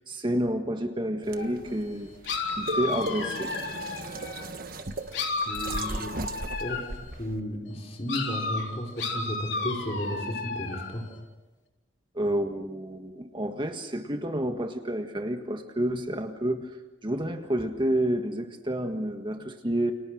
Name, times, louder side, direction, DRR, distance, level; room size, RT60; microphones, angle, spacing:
voice 1, 0.1-2.1 2.6-3.6 12.1-16.8 17.0-19.9, right 1 dB, 25° right, 5 dB, 1.6 m, -29 dB
sound 1, 1.2-7.4, right 2 dB, 50° right, 1.5 m, -37 dB
sound 2, 1.4-1.5 2.2-4.5 5.1-7.0 8.1-11.0, left 3 dB, 70° left, 3.9 m, -33 dB
voice 2, 5.5-6.1 6.6-6.9 7.1-11.1, equal, 35° left, 2 dB, 5.1 m, -33 dB
30.0 x 29.5 x 6.4 m, 1.1 s
head